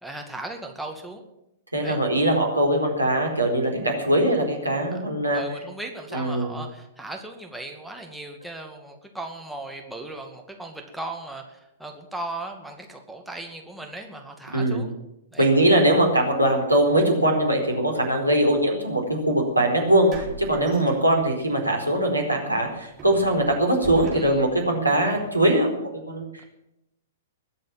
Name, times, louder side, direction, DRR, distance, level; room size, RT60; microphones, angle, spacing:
voice 1, 0.0-1.2 1.8-2.0 4.9-5.0 5.3-14.9 15.3-15.5 24.1-24.4, right 2 dB, ahead, 1 dB, 2.2 m, -37 dB
voice 2, 1.7-5.4 6.1-6.5 14.5-14.8 15.4-25.7 26.1-26.4, right 1 dB, 90° right, 1 dB, 4.4 m, -21 dB
sound 1, 19.0-19.1 20.1-21.6 21.9-22.1 22.6-24.7, right 2 dB, 25° right, 3.9 m, -41 dB
21.0 x 7.7 x 7.5 m, 0.85 s
figure-of-eight pair, 110°, 0 cm